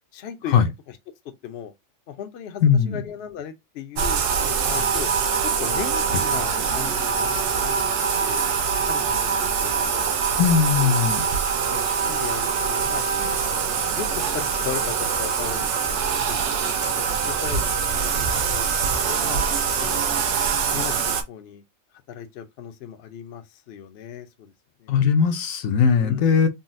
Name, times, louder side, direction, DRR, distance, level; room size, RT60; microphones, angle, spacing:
voice 1, 0.1-0.6 0.9-1.0 1.4-1.7 2.1-5.1 5.4-7.8 8.2-8.4 8.8-10.1 10.8-11.0 11.7-13.4 13.9-16.4 17.0-19.4 19.8-20.2 20.7-21.6 22.1-24.5 24.8-25.0 26.0-26.3, left 9 dB, 60° left, 0.7 m, -37 dB
voice 2, 2.6-3.0 10.4-11.3 24.9-26.5, left 7 dB, 80° left, 1.0 m, -19 dB
Bathtub (filling or washing), 4.0-21.2, right 6 dB, 65° right, 0.8 m, -24 dB
3.9 x 2.1 x 2.5 m
omnidirectional pair, 1.4 m